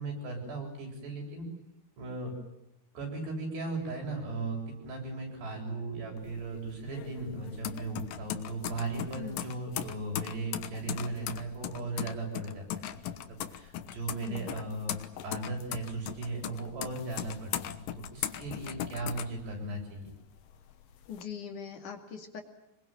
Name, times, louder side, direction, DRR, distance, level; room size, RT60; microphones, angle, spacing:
voice 1, 0.0-1.4 2.0-2.3 2.9-12.7 13.0-14.9 15.2-17.6 18.0-20.1, right 3 dB, 85° right, 1 dB, 9.9 m, -37 dB
sound 1, 6.2-20.0 20.4-21.2, left 11 dB, 70° left, 2.5 m, -39 dB
voice 2, 21.1-22.4, left 7 dB, 55° left, 5 dB, 3.6 m, -41 dB
26.0 x 22.0 x 9.3 m, 0.87 s
omnidirectional pair, 4.7 m